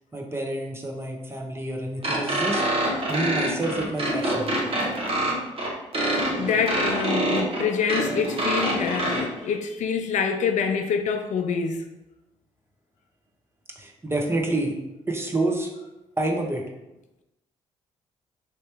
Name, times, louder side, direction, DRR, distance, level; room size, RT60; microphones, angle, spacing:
voice 1, 0.1-2.6 3.1-4.5 13.8-14.8 15.1-15.7 16.2-16.6, right 2 dB, 20° right, 0 dB, 0.9 m, -28 dB
sound 1, 2.0-9.2, right 1 dB, 45° right, 1.0 m, -25 dB
voice 2, 6.1-11.9, left 6 dB, 60° left, 5 dB, 0.4 m, -26 dB
3.3 x 2.7 x 3.3 m, 0.96 s
hypercardioid pair, 45°, 14 cm